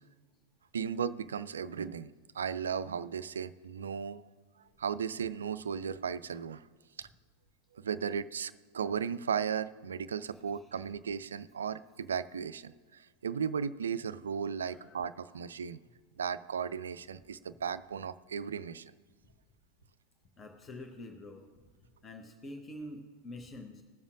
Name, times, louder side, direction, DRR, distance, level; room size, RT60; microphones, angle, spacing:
voice 1, 0.7-4.3 4.8-6.6 7.0-7.1 7.7-15.8 16.2-18.9, right 7 dB, 70° right, 15 dB, 0.3 m, -36 dB
voice 2, 10.3-10.8 14.7-15.4 20.4-21.6 22.0-23.8, left 1 dB, 20° left, 3 dB, 1.0 m, -47 dB
20.0 x 7.1 x 2.5 m, 1.5 s
figure-of-eight pair, 90°, 0 cm